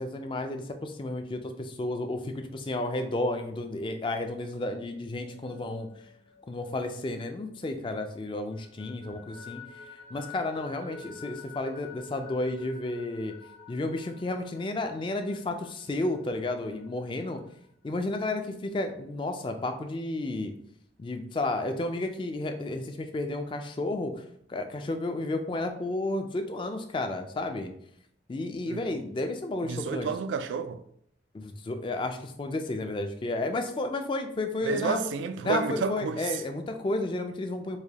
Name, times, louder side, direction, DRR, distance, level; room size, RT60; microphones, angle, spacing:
voice 1, 0.0-5.9 6.5-9.6 10.1-13.3 13.7-17.4 17.8-20.5 21.0-24.1 24.5-27.7 28.3-30.1 31.3-35.0 35.4-37.8, left 2 dB, 25° left, 0.3 m, -32 dB
sound 1, 5.0-7.9 8.2-17.7, left 4 dB, 45° left, 0.8 m, -49 dB
voice 2, 28.7-29.0 29.6-30.8 34.6-36.4, right 5 dB, 90° right, 0.3 m, -31 dB
4.7 x 2.2 x 2.8 m
head